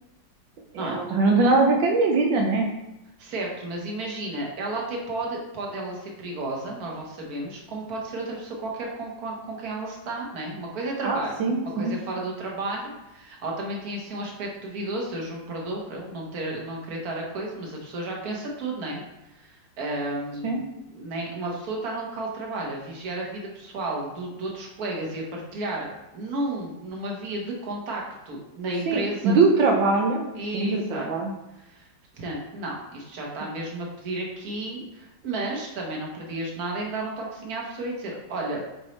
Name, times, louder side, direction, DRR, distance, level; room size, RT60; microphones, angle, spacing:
voice 1, 0.7-2.7 11.0-12.0 20.4-20.7 28.9-31.3, right 3 dB, 85° right, 1 dB, 1.5 m, -22 dB
voice 2, 3.2-11.3 11.8-19.0 19.3-25.9 26.1-29.4 30.4-31.1 31.6-31.9 32.1-38.6, right 2 dB, 55° right, -1 dB, 1.8 m, -32 dB
8.3 x 4.5 x 3.2 m, 0.94 s
omnidirectional pair, 2.0 m